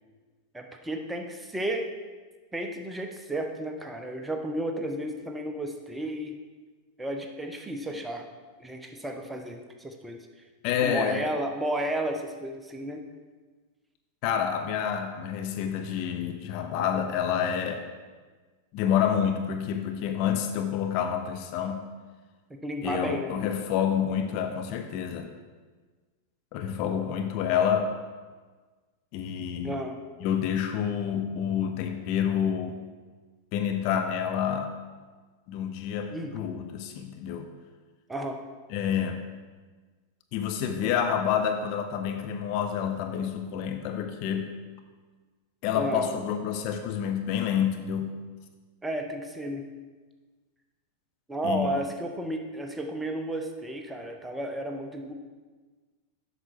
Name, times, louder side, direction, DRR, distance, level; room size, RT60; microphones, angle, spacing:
voice 1, 0.5-1.9 2.5-6.4 7.0-8.3 8.6-10.3 10.8-13.0 22.5-23.4 29.6-30.0 36.1-36.4 38.1-38.4 40.8-41.0 45.7-46.1 48.8-49.7 51.3-55.1, right 1 dB, 10° right, 4 dB, 0.8 m, -33 dB
voice 2, 10.6-11.3 14.2-17.9 18.7-21.8 22.8-25.3 26.5-27.9 29.1-29.8 30.2-32.8 33.5-34.7 35.5-37.5 38.7-39.2 40.3-44.5 45.6-48.1 51.4-51.7, left 8 dB, 45° left, 6 dB, 0.6 m, -28 dB
7.7 x 6.1 x 4.6 m, 1.4 s
figure-of-eight pair, 90°, 0 cm